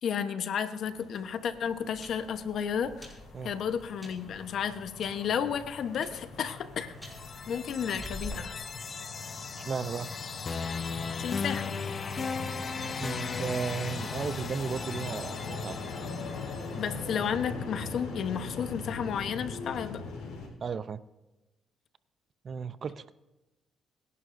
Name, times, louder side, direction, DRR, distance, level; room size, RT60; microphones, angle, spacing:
voice 1, 0.0-3.1 3.4-7.1 7.5-8.6 11.2-11.8 16.8-20.0, left 7 dB, 65° left, 10 dB, 1.0 m, -32 dB
sound 1, 0.7-20.5, left 4 dB, 80° left, 3.9 m, -41 dB
sound 2, 1.0-8.3, left 1 dB, 5° right, 4.3 m, -48 dB
sound 3, 7.0-17.0, left 5 dB, 40° left, 0.5 m, -37 dB
voice 2, 9.6-10.1 13.0-15.8 20.6-21.0 22.4-23.1, right 6 dB, 45° right, 15 dB, 0.5 m, -35 dB
23.0 x 11.0 x 2.6 m, 1.0 s
cardioid pair, 90°, 0 cm